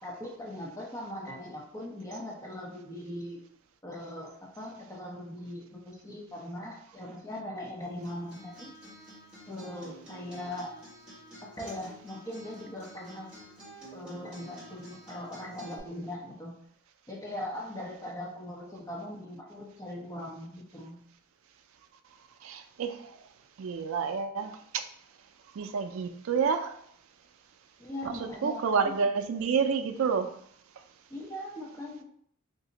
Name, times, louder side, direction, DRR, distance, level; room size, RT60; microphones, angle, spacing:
voice 1, 0.0-3.4 3.8-8.7 9.5-10.7 11.6-13.3 13.9-16.5 17.1-21.0 27.8-28.6 31.1-32.0, left 1 dB, 15° left, -3 dB, 0.7 m, -40 dB
Acoustic guitar, 7.8-15.8, right 1 dB, 5° right, 1.2 m, -50 dB
voice 2, 22.4-23.1 23.6-24.8 25.6-26.8 28.0-30.3, right 6 dB, 75° right, 8 dB, 0.4 m, -29 dB
2.8 x 2.5 x 3.9 m, 0.64 s
head